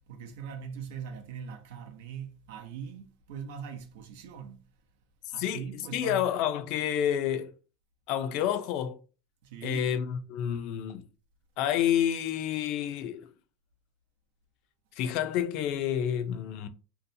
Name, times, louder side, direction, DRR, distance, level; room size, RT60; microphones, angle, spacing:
voice 1, 0.1-4.6 5.3-6.3 9.4-9.9, right 7 dB, 80° right, 0.6 m, -41 dB
voice 2, 5.4-7.5 8.1-9.0 9.6-11.0 11.6-13.3 15.0-16.7, left 10 dB, 60° left, 0.4 m, -29 dB
2.7 x 2.1 x 2.6 m
supercardioid pair, 125°, 0 cm